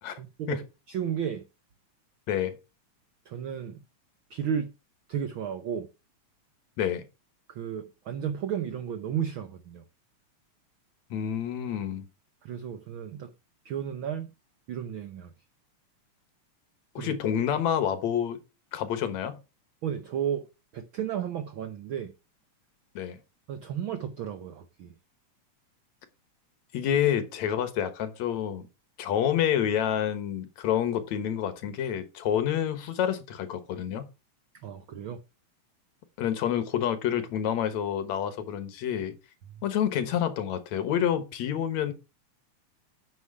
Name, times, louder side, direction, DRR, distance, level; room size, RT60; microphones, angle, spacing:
voice 1, 0.1-1.4 3.2-3.8 4.3-4.7 5.1-5.9 7.5-9.8 12.4-13.3 13.6-14.3 14.7-15.3 16.9-17.1 19.8-20.5 20.7-22.1 23.5-24.9 34.5-35.2 39.5-39.6, right 8 dB, 80° right, 1.1 m, -33 dB
voice 2, 11.1-12.1 17.0-18.4 18.7-19.4 23.0-23.2 26.7-28.7 29.0-34.1 36.2-39.1 39.6-41.9, left 9 dB, 70° left, 2.4 m, -28 dB
9.1 x 6.7 x 4.8 m
omnidirectional pair, 3.4 m